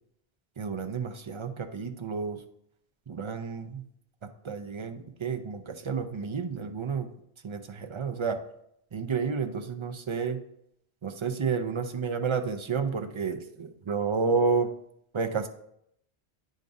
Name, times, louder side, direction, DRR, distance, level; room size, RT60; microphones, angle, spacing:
voice 1, 0.6-2.4 3.1-3.8 4.2-7.1 7.4-8.4 8.9-10.4 11.0-14.7 15.1-15.5, right 5 dB, 45° right, 6 dB, 0.4 m, -30 dB
9.4 x 5.1 x 2.6 m, 0.73 s
omnidirectional pair, 1.1 m